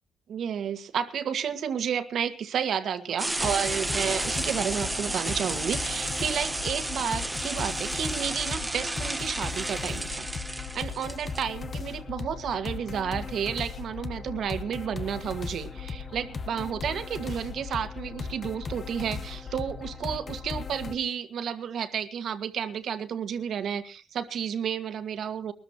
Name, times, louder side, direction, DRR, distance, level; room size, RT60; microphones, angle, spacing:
voice 1, 0.3-10.3 10.7-25.5, right 8 dB, 65° right, 10 dB, 1.8 m, -31 dB
sound 1, 3.2-11.4, right 2 dB, 10° right, 1.1 m, -32 dB
sound 2, 3.4-20.9, left 5 dB, 40° left, 1.1 m, -37 dB
23.0 x 13.5 x 3.0 m, 0.39 s
cardioid pair, 130°, 0 cm